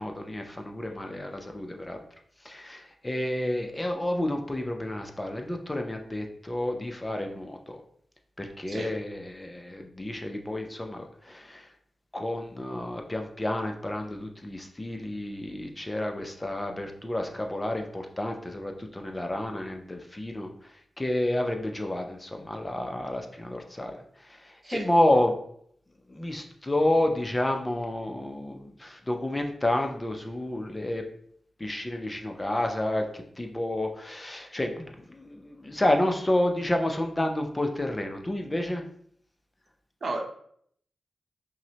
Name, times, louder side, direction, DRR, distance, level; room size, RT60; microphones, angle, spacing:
voice 1, 0.0-2.0 2.4-7.8 8.4-11.7 12.1-25.4 26.1-31.0 31.6-38.8, left 1 dB, 20° left, 4 dB, 0.5 m, -30 dB
voice 2, 8.7-8.9 24.6-24.9 40.0-40.2, right 2 dB, 55° right, 2 dB, 0.8 m, -32 dB
5.6 x 2.1 x 2.8 m, 0.65 s
cardioid pair, 60°, 0 cm